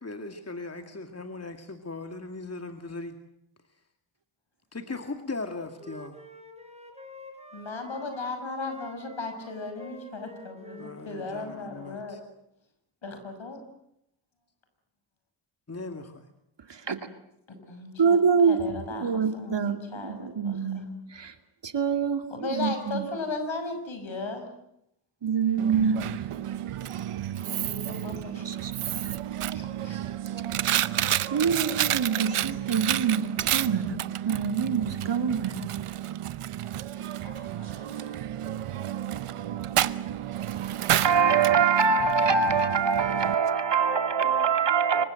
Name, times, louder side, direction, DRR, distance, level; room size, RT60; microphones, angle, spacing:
voice 1, 0.0-3.2 3.7-3.8 4.7-6.2 10.8-12.2 15.7-16.3, left 3 dB, 30° left, 2.3 m, -38 dB
Wind instrument woodwind instrument, 5.4-8.3 8.6-12.1, equal, 10° right, 4.2 m, -49 dB
voice 2, 7.5-12.2 13.0-13.6 17.5-20.6 22.3-24.4 27.5-28.6 29.5-30.0 37.1-38.2, left 3 dB, 65° left, 6.6 m, -36 dB
voice 3, 16.7-17.0 18.0-21.3 21.6-23.1 25.2-26.2 28.4-29.1 31.3-34.0 34.2-35.5 41.0-45.0, right 6 dB, 55° right, 2.5 m, -25 dB
Coin (dropping), 25.6-43.3, right 11 dB, 85° right, 0.9 m, -31 dB
25.5 x 24.0 x 7.8 m
cardioid pair, 60°, 50 cm